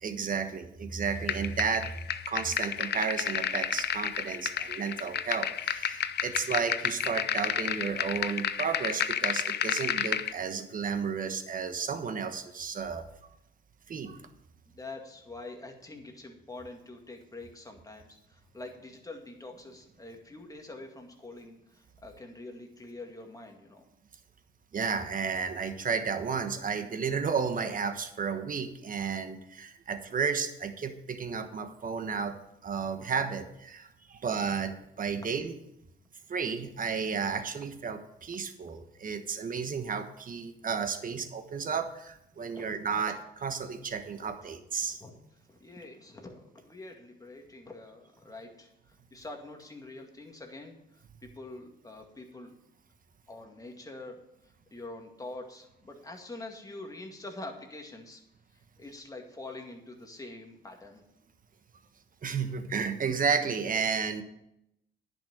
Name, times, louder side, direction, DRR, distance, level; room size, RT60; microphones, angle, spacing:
voice 1, 0.0-1.9 2.3-13.1 13.9-14.2 24.7-32.4 32.6-35.5 36.3-43.2 43.4-45.0 62.2-64.2, right 6 dB, 45° right, 8 dB, 1.3 m, -32 dB
sound 1, 1.3-10.3, left 9 dB, 55° left, 0.7 m, -31 dB
voice 2, 14.7-23.9 42.5-42.7 44.4-44.5 44.8-45.2 45.5-50.8 51.2-52.5 53.3-58.2 58.5-61.0, left 2 dB, 15° left, 2 dB, 2.1 m, -45 dB
10.5 x 5.9 x 7.9 m, 0.82 s
cardioid pair, 90°, 20 cm